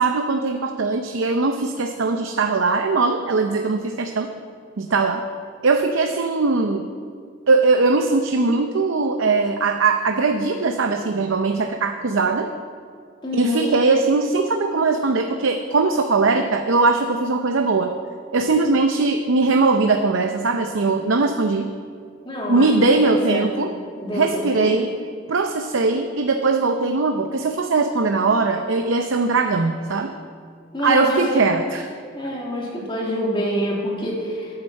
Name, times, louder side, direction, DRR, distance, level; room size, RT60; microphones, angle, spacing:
voice 1, 0.0-4.3 4.8-5.2 5.6-6.9 7.5-12.5 13.3-18.0 18.3-21.7 22.5-23.7 24.1-24.9 25.3-30.1 30.8-31.9, right 3 dB, 75° right, 6 dB, 0.6 m, -20 dB
voice 2, 13.2-13.7 22.3-22.7 23.0-23.4 23.9-24.7 30.7-31.4 32.1-34.5, equal, 25° left, -3 dB, 2.4 m, -26 dB
9.7 x 8.8 x 7.3 m, 2.2 s
head